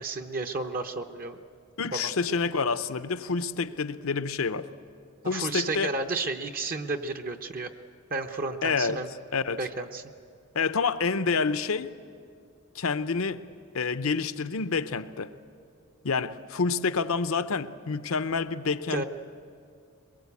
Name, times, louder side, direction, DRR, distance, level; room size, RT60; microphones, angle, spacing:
voice 1, 0.0-1.4 1.9-2.1 5.3-7.7 8.1-9.1 9.6-10.0 18.9-19.0, right 3 dB, 40° right, 7 dB, 0.8 m, -32 dB
voice 2, 1.8-4.7 5.2-5.9 8.6-9.0 9.3-9.6 10.5-11.9 12.7-13.4 13.7-15.3 16.0-19.0, left 4 dB, 70° left, 12 dB, 0.7 m, -28 dB
22.5 x 21.5 x 8.4 m, 2.3 s
head